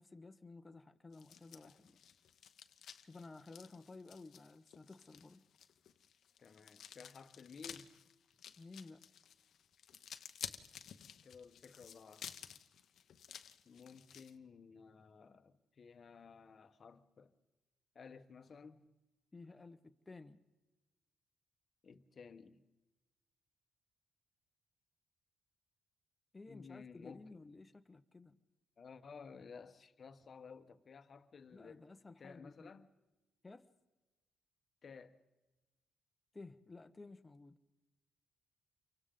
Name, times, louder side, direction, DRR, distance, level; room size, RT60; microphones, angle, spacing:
voice 1, 0.0-2.0 3.0-5.4 8.6-9.1 19.3-20.4 26.3-28.4 31.5-32.7 33.4-33.7 36.3-37.6, left 3 dB, 20° left, 1.2 m, -54 dB
sound 1, 1.1-14.3, left 9 dB, 65° left, 0.9 m, -53 dB
voice 2, 6.4-7.9 11.2-12.3 13.6-17.3 17.9-18.9 21.8-22.6 26.5-27.4 28.8-31.9 32.2-32.9 34.8-35.2, left 5 dB, 45° left, 1.2 m, -55 dB
28.5 x 24.0 x 3.9 m
cardioid pair, 90°, 0 cm